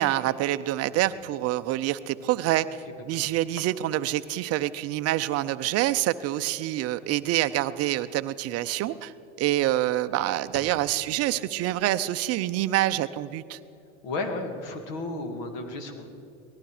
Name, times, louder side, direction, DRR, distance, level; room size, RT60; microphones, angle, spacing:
voice 1, 0.0-9.1 9.4-13.6, right 14 dB, 40° right, 13 dB, 0.6 m, -26 dB
voice 2, 14.0-16.1, left 2 dB, 55° left, 6 dB, 2.4 m, -33 dB
19.0 x 14.5 x 4.9 m, 2.7 s
supercardioid pair, 110°, 37 cm